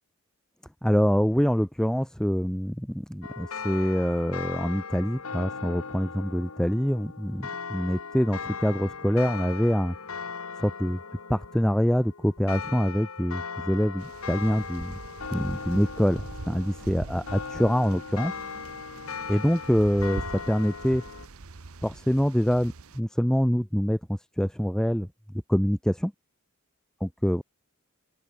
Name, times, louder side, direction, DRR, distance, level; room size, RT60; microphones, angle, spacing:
voice 1, 0.8-9.9 10.6-11.0 11.3-15.0 15.3-18.3 19.3-21.0 21.8-24.0 24.4-25.1 25.5-26.1 27.0-27.4, equal, 5° left, 1.0 m, -25 dB
sound 1, 3.2-21.3, left 5 dB, 75° left, 1.4 m, -38 dB
sound 2, 14.0-23.0, right 3 dB, 75° right, 1.0 m, -42 dB
open air
head